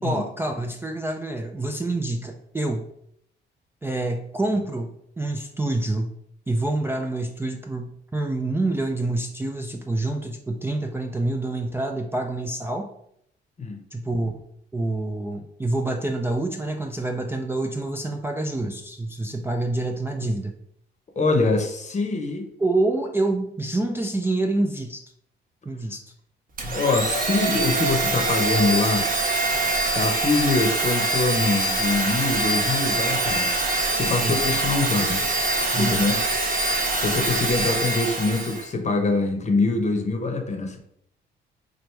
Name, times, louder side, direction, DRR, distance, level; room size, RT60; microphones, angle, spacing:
voice 1, 0.0-2.9 3.8-6.1 6.5-12.9 13.9-14.4 14.7-20.6 22.6-25.0 25.7-26.0 34.2-34.6 35.7-36.1, right 2 dB, 10° right, 3 dB, 0.4 m, -27 dB
voice 2, 21.2-22.5 26.7-29.1 29.9-33.5 33.9-35.2 35.8-36.2 37.0-40.8, left 3 dB, 35° left, 4 dB, 0.8 m, -24 dB
Domestic sounds home sounds, 26.6-38.7, right 2 dB, 45° right, 1.0 m, -24 dB
4.5 x 2.5 x 3.2 m, 0.71 s
cardioid pair, 90°, 20 cm